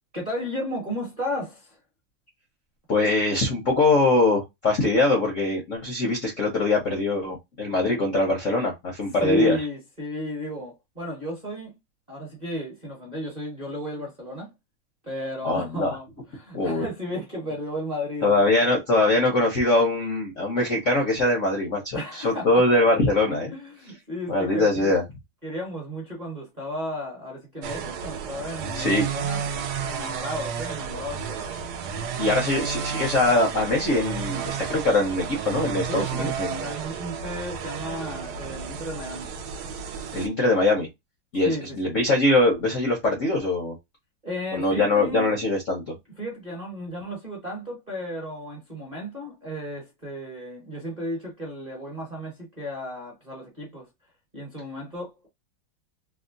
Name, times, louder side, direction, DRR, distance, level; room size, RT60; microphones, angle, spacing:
voice 1, 0.1-1.8 9.2-11.7 12.1-14.5 15.0-18.3 21.9-22.5 23.5-24.9 25.4-29.5 29.8-31.4 35.9-36.3 36.6-39.3 41.4-41.9 44.2-45.3 46.2-53.9 54.3-55.3, equal, 30° right, 0.9 m, -33 dB
voice 2, 2.9-9.6 15.4-16.0 16.5-16.8 18.2-23.5 24.3-25.0 28.7-29.1 32.2-36.6 40.1-40.9 41.3-43.7 44.5-45.9, left 2 dB, 60° left, 0.8 m, -22 dB
sound 1, 27.6-40.3, right 7 dB, 75° right, 0.9 m, -32 dB
3.6 x 2.1 x 2.5 m
omnidirectional pair, 2.4 m